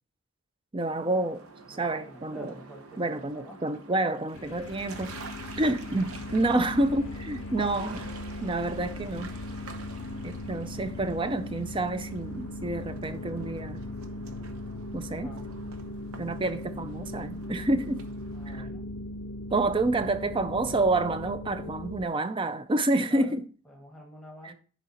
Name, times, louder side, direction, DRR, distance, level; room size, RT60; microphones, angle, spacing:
voice 1, 0.7-1.4 1.7-2.5 3.0-5.2 5.6-8.1 8.4-9.4 10.2-13.8 14.9-15.3 16.2-18.0 18.5-18.7 19.5-23.5 24.4-24.5, right 2 dB, 25° right, 0.4 m, -28 dB
sound 1, 0.9-18.6, right 3 dB, 75° right, 1.0 m, -47 dB
voice 2, 1.7-3.6 15.2-15.6 18.3-18.9 19.8-20.0 23.1-23.4 23.7-24.5, equal, ahead, 1.2 m, -48 dB
sound 2, 4.3-22.1, left 1 dB, 65° left, 0.5 m, -38 dB
10.5 x 4.0 x 4.2 m
head